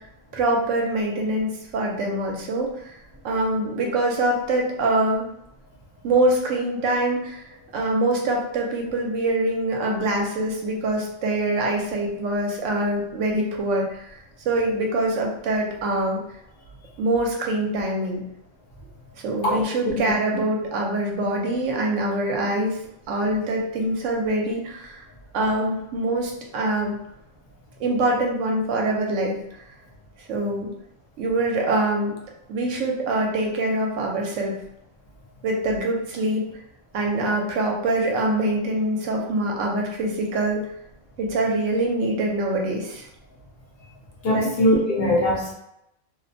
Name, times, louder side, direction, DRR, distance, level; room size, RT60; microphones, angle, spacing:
voice 1, 0.3-3.0 3.2-5.3 6.0-14.1 14.4-16.2 17.0-18.3 19.2-22.8 23.1-25.0 25.3-27.0 27.8-29.4 30.2-30.7 31.2-32.1 32.5-34.6 35.4-36.4 36.9-40.6 41.2-43.0 44.3-44.5, right 1 dB, 75° right, 0 dB, 0.9 m, -24 dB
voice 2, 19.4-19.9 44.2-45.5, left 1 dB, 60° left, -3 dB, 0.7 m, -21 dB
2.4 x 2.1 x 2.6 m, 0.80 s
omnidirectional pair, 1.3 m